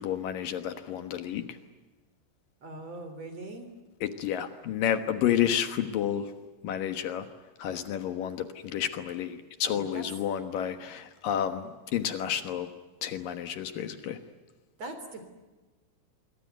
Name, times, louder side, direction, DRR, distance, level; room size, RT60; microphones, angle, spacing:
voice 1, 0.0-1.5 4.0-6.3 6.6-7.3 7.6-12.7 13.0-14.2, left 10 dB, 70° left, 10 dB, 2.1 m, -30 dB
voice 2, 2.6-3.7 9.6-10.1 14.8-15.2, right 2 dB, 35° right, 8 dB, 3.8 m, -41 dB
27.0 x 24.0 x 9.4 m, 1.2 s
omnidirectional pair, 5.9 m